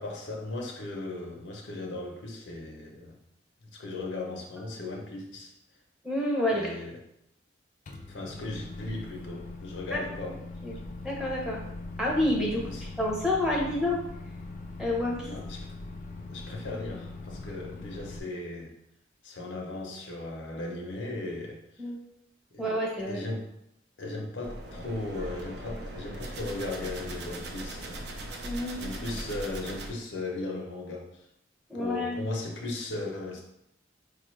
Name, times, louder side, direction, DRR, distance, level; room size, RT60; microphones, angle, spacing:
voice 1, 0.0-3.2 3.6-5.5 6.5-6.9 8.1-10.4 12.6-12.8 15.3-15.7 16.3-18.7 19.2-21.6 22.5-22.7 23.1-23.5 24.0-28.4 28.8-31.1 31.7-33.4, left 2 dB, 80° left, 0 dB, 0.7 m, -37 dB
voice 2, 6.0-6.7 9.9-10.0 10.6-10.8 11.0-11.6 12.0-14.0 14.8-15.3 21.8-22.0 22.6-23.2 28.4-29.0 31.7-32.2, left 1 dB, 5° right, -3 dB, 0.6 m, -29 dB
Microwave oven, 7.9-18.2, left 2 dB, 45° left, 0.4 m, -41 dB
sound 1, 24.4-29.9, right 1 dB, 65° right, 0.5 m, -39 dB
4.5 x 2.4 x 3.1 m, 0.80 s
head